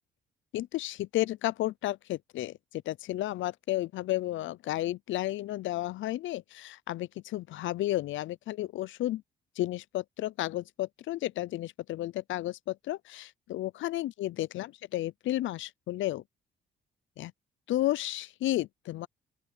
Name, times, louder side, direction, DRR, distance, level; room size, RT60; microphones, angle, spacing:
voice 1, 0.5-9.2 9.6-16.2 17.2-17.3 17.7-19.1, left 15 dB, 75° left, 0.6 m, -32 dB
open air
cardioid pair, 90°, 20 cm